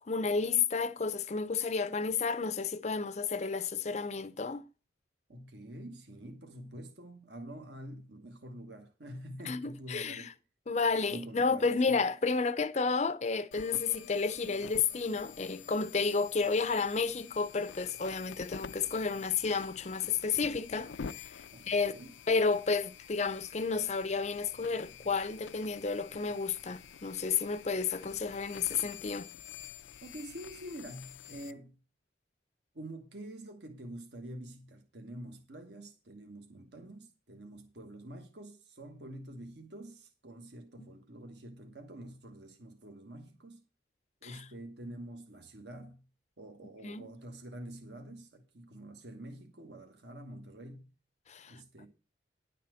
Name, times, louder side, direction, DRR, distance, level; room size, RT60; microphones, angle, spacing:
voice 1, 0.1-4.6 9.5-10.3 10.7-21.9 22.3-29.3 40.8-40.9 44.2-44.4 46.8-47.1 51.3-51.6, left 4 dB, 40° left, 0.5 m, -31 dB
voice 2, 5.3-10.3 11.1-12.0 21.5-22.1 30.0-31.8 32.7-43.6 44.2-46.0 46.4-50.9 51.5-51.9, right 1 dB, 65° right, 1.3 m, -47 dB
sound 1, 13.5-31.5, left 7 dB, 85° left, 0.5 m, -49 dB
10.5 x 4.2 x 7.6 m
head